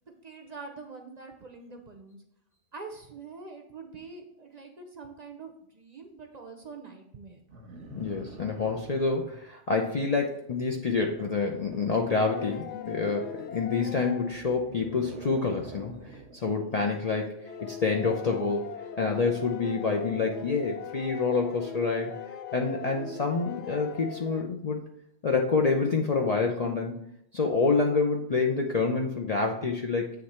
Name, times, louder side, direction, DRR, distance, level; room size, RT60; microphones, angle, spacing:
voice 1, 0.0-2.2 2.7-7.4, right 4 dB, 45° right, 3 dB, 0.7 m, -45 dB
sound 1, 7.5-9.5 11.2-12.9 14.2-16.5 17.8-17.9, right 3 dB, 80° right, 1.1 m, -47 dB
voice 2, 7.9-16.0 16.3-17.4 17.6-18.7 19.0-22.1 22.5-24.8 25.2-27.0 27.3-30.1, left 4 dB, 45° left, 1 dB, 0.5 m, -27 dB
sound 2, 12.1-14.5 17.4-24.4, left 7 dB, 75° left, 0.9 m, -40 dB
7.9 x 3.2 x 4.3 m, 0.77 s
omnidirectional pair, 1.2 m